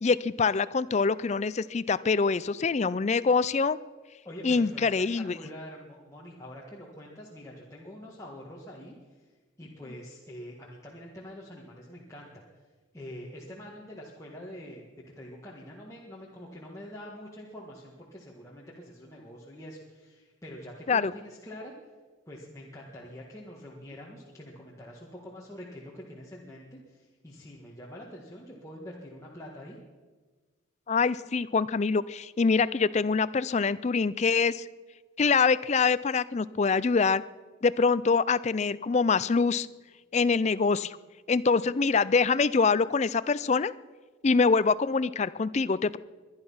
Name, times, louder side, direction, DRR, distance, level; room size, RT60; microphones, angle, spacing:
voice 1, 0.0-3.8 4.4-5.4 20.9-21.1 30.9-34.6 35.2-37.2 37.6-39.7 40.1-41.0 41.3-43.7 44.2-46.0, left 4 dB, 35° left, 16 dB, 0.4 m, -25 dB
voice 2, 4.2-9.3 9.6-12.4 12.9-14.8 15.2-21.7 22.3-29.8, equal, 15° left, -4 dB, 1.6 m, -45 dB
23.0 x 10.5 x 5.6 m, 1.3 s
head